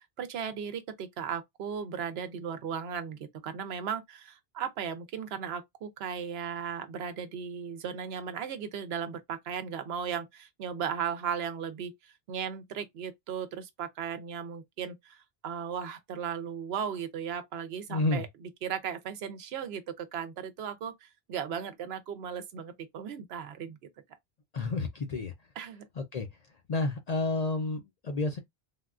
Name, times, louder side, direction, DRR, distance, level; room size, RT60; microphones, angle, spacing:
voice 1, 0.0-18.3 18.6-23.8 25.6-25.9, right 7 dB, 75° right, 0.8 m, -36 dB
voice 2, 17.9-18.2 24.5-25.3 26.0-26.3 26.7-28.4, left 3 dB, 55° left, 0.5 m, -30 dB
3.5 x 2.2 x 2.4 m
omnidirectional pair, 1.1 m